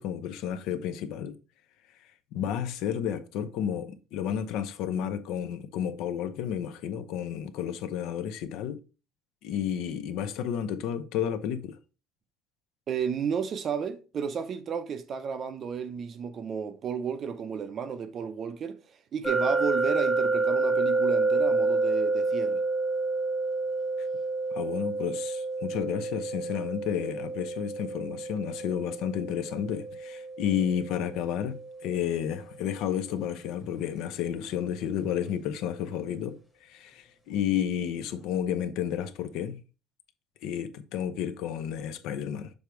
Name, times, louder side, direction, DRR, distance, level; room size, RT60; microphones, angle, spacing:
voice 1, 0.0-1.4 2.3-8.8 9.4-11.8 24.0-24.1 24.5-39.6 40.4-42.5, left 9 dB, 60° left, 0.6 m, -31 dB
voice 2, 12.9-22.6, right 7 dB, 30° right, 0.6 m, -33 dB
sound 1, 19.2-32.1, right 3 dB, 5° left, 1.1 m, -29 dB
6.6 x 3.4 x 4.5 m
cardioid pair, 165°, 0 cm